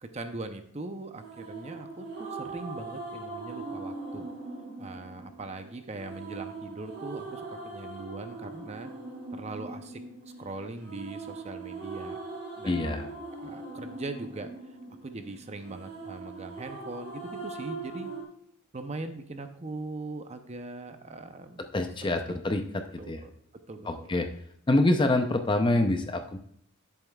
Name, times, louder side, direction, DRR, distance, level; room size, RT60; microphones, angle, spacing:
voice 1, 0.0-4.3 4.8-8.9 9.3-12.2 12.6-12.9 13.4-14.5 15.0-18.1 18.7-21.7 22.0-22.1 23.0-23.3 23.7-24.1, right 2 dB, 30° right, 7 dB, 0.6 m, -40 dB
sound 1, 1.2-18.2, right 3 dB, 50° right, 3.0 m, -41 dB
voice 2, 12.7-13.1 21.7-22.6 23.1-23.2 23.8-24.3 24.7-26.4, left 2 dB, 20° left, 7 dB, 0.5 m, -25 dB
11.5 x 7.2 x 2.3 m, 0.66 s
head